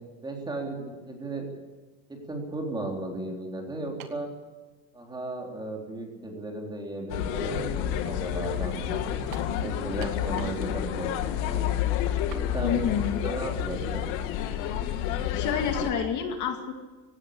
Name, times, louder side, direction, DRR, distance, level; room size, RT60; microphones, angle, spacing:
voice 1, 0.2-1.5 2.3-4.3 4.9-9.1 9.5-11.8 12.3-12.9 13.2-14.0, right 2 dB, 10° right, 1 dB, 3.7 m, -35 dB
sound 1, 4.0-4.3 5.2-5.3 9.3-9.6 10.0-10.7 10.9-11.0 12.3-12.5, right 11 dB, 80° right, 2.0 m, -44 dB
sound 2, 7.1-15.9, left 10 dB, 80° left, 2.2 m, -29 dB
voice 2, 12.6-13.2 15.1-16.7, left 8 dB, 45° left, 4 dB, 2.3 m, -29 dB
17.5 x 17.0 x 8.6 m, 1.2 s
cardioid pair, 165°, 40 cm